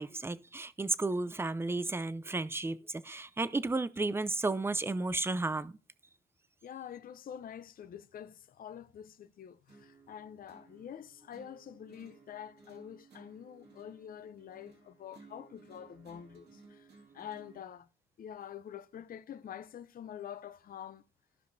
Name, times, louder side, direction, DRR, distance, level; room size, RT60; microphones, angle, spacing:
voice 1, 0.0-5.8, right 3 dB, 10° right, 0.5 m, -33 dB
voice 2, 6.6-17.9 18.2-21.0, left 9 dB, 45° left, 0.6 m, -47 dB
sound 1, 9.7-17.7, right 3 dB, 55° right, 2.3 m, -58 dB
14.5 x 5.1 x 2.6 m
cardioid pair, 90°, 20 cm